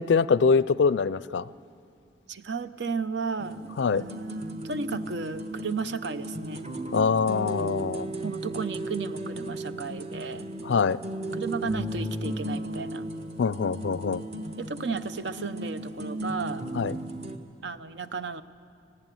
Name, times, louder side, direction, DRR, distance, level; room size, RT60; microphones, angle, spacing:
voice 1, 0.0-1.4 3.8-4.0 6.9-8.1 10.7-11.0 13.4-14.2 16.8-16.9, left 5 dB, 85° left, 19 dB, 0.4 m, -24 dB
voice 2, 2.3-6.7 8.2-11.0 11.3-13.1 14.6-16.6 17.6-18.4, right 4 dB, 75° right, 12 dB, 0.7 m, -34 dB
sound 1, 3.4-17.4, right 1 dB, 35° right, 1.1 m, -35 dB
19.0 x 16.5 x 9.2 m, 2.4 s
head